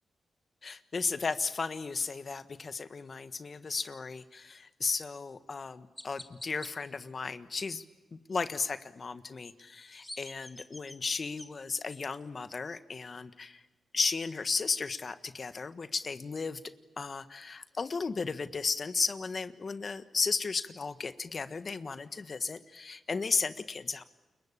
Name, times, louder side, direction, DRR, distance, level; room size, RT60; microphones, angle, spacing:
voice 1, 0.6-7.8 8.1-13.6 13.9-16.6 17.0-24.0, left 4 dB, 45° left, 12 dB, 1.5 m, -34 dB
Chirp tweet, 5.1-5.2 6.0-6.7 9.7-11.5, left 1 dB, 15° left, 2.2 m, -47 dB
29.5 x 22.5 x 8.8 m, 1.2 s
cardioid pair, 65°, 0 cm